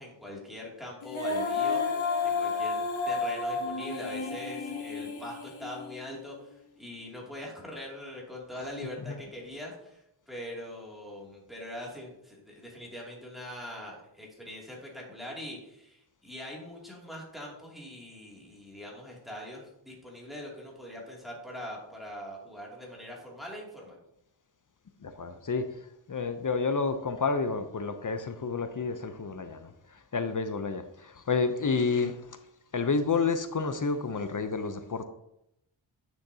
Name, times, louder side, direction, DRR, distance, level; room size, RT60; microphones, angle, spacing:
voice 1, 0.0-1.8 2.2-24.0, left 1 dB, ahead, -4 dB, 2.4 m, -42 dB
Female singing, 1.0-6.2, left 4 dB, 90° left, 1.3 m, -31 dB
voice 2, 25.0-32.4 32.7-35.0, left 4 dB, 40° left, 9 dB, 0.6 m, -30 dB
10.0 x 6.4 x 2.8 m, 0.80 s
wide cardioid pair, 105°, 47 cm